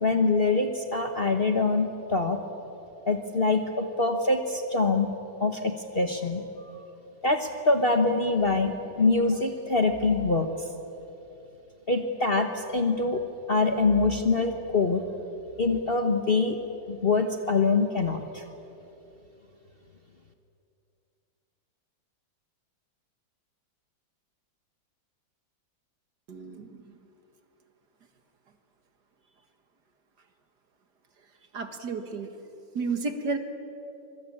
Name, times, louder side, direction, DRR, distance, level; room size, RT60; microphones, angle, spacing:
voice 1, 0.0-2.4 3.1-5.1 5.4-6.4 7.2-10.5 11.9-13.2 13.5-15.0 15.6-16.6 16.9-18.4, left 3 dB, 35° left, 5 dB, 1.2 m, -24 dB
voice 2, 26.3-26.9 31.5-32.3 32.7-33.4, right 4 dB, 55° right, 7 dB, 2.2 m, -32 dB
24.5 x 22.5 x 8.7 m, 3.0 s
omnidirectional pair, 2.2 m